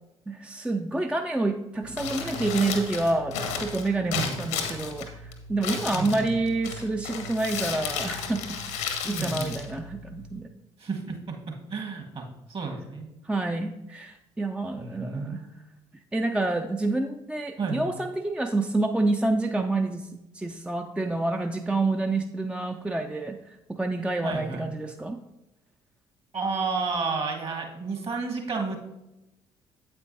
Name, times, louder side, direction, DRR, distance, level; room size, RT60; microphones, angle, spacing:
voice 1, 0.3-10.5 13.2-15.5 16.1-20.1 20.3-25.2, right 2 dB, 5° right, 5 dB, 0.4 m, -28 dB
Crumpling crinkling, 1.8-10.4, left 5 dB, 70° left, 1.0 m, -34 dB
voice 2, 4.0-4.4 5.9-6.3 9.0-9.6 10.8-13.1 14.8-15.4 17.6-17.9 24.2-24.6 26.3-28.8, right 4 dB, 40° right, 3 dB, 1.5 m, -31 dB
8.7 x 8.1 x 2.7 m, 0.94 s
figure-of-eight pair, 45°, 15 cm